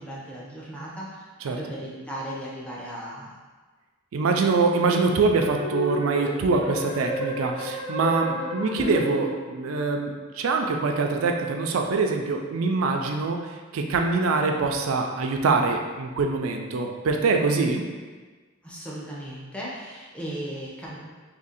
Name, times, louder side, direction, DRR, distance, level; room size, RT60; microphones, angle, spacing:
voice 1, 0.0-3.4 8.4-8.8 18.6-21.0, equal, 5° left, -6 dB, 0.7 m, -37 dB
voice 2, 4.1-17.8, right 4 dB, 90° right, 3 dB, 0.4 m, -24 dB
sound 1, 5.3-9.7, equal, 70° left, 1.2 m, -32 dB
2.8 x 2.6 x 4.0 m, 1.4 s
head